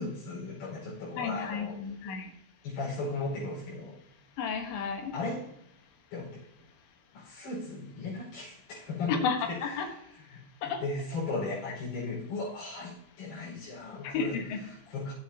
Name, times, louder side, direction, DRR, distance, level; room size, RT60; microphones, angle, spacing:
voice 1, 0.0-1.7 2.6-3.9 5.1-5.5 6.1-6.4 7.1-15.1, left 3 dB, 65° left, -8 dB, 7.3 m, -37 dB
voice 2, 1.2-2.3 4.4-5.1 9.2-9.4 9.6-9.9 10.6-10.8 14.0-14.6, left 5 dB, 85° left, 4 dB, 3.8 m, -32 dB
18.0 x 8.3 x 2.9 m, 0.79 s
omnidirectional pair, 5.1 m